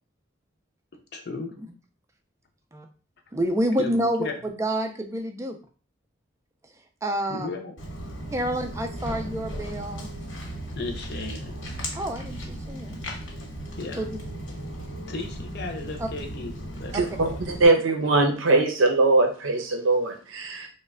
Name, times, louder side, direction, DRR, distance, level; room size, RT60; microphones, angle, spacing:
voice 1, 1.1-1.5 3.8-4.4 7.3-7.8 10.7-11.6 13.8-14.0 15.1-16.5 16.8-17.0 17.2-17.4, left 3 dB, 55° left, 0.6 m, -34 dB
voice 2, 3.3-5.6 7.0-7.5 8.3-10.1 11.9-13.0 14.0-14.2 16.0-16.1 16.9-17.0, right 1 dB, 15° right, 0.3 m, -28 dB
Walk footsteps, 7.8-17.7, equal, 75° left, 1.0 m, -36 dB
voice 3, 16.9-20.7, right 2 dB, 80° right, 0.6 m, -21 dB
3.1 x 2.1 x 3.5 m
head